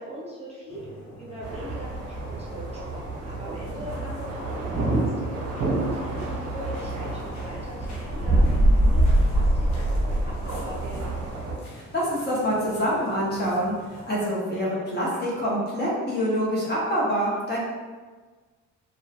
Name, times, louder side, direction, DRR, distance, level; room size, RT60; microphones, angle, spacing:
voice 1, 0.0-11.2, equal, 20° right, -6 dB, 0.8 m, -41 dB
sound 1, 0.7-14.3, equal, 65° left, 1.0 m, -47 dB
sound 2, 1.4-11.5, right 1 dB, 50° right, 0.7 m, -25 dB
voice 2, 11.7-17.6, equal, 35° left, -6 dB, 0.9 m, -26 dB
3.0 x 2.3 x 2.3 m, 1.4 s
cardioid pair, 90°, 30 cm